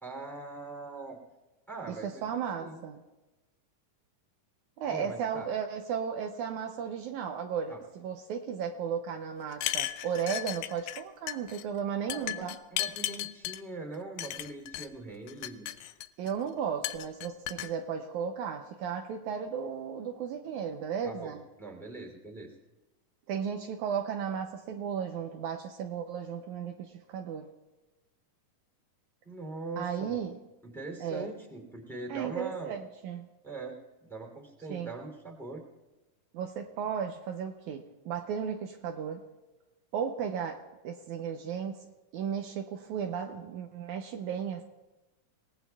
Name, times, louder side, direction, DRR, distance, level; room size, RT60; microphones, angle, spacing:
voice 1, 0.0-1.2 1.7-2.8 4.9-5.5 7.7-7.8 12.0-15.7 21.0-22.5 29.2-30.2 30.6-32.8 33.4-35.6, right 3 dB, ahead, 1 dB, 2.5 m, -42 dB
voice 2, 1.9-3.0 4.8-12.6 16.2-21.4 23.3-27.5 29.8-30.4 31.0-31.3 32.1-33.3 34.7-34.9 36.3-39.2 39.9-41.8 42.1-44.6, right 7 dB, 75° right, 4 dB, 2.0 m, -35 dB
sound 1, 9.5-11.0 11.3-11.6 12.1-13.6 14.2-14.9 15.3-16.3 16.8-17.7, left 14 dB, 90° left, 2.2 m, -35 dB
29.5 x 18.0 x 2.4 m, 1.1 s
omnidirectional pair, 3.7 m